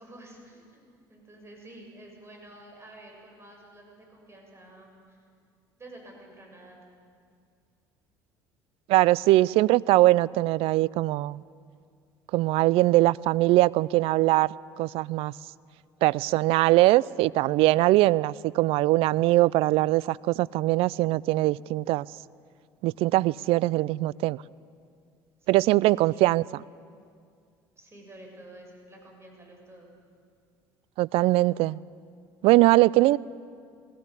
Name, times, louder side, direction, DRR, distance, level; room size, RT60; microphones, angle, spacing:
voice 1, 0.0-5.2 5.8-6.8 25.5-26.3 27.8-29.9, right 1 dB, 25° right, 1 dB, 7.3 m, -50 dB
voice 2, 8.9-11.4 12.3-14.5 14.8-15.3 16.0-22.1 22.8-24.4 25.5-26.4 31.0-31.8 32.4-33.2, right 18 dB, 65° right, 22 dB, 0.4 m, -21 dB
20.0 x 17.0 x 8.3 m, 2.2 s
hypercardioid pair, 70°, 11 cm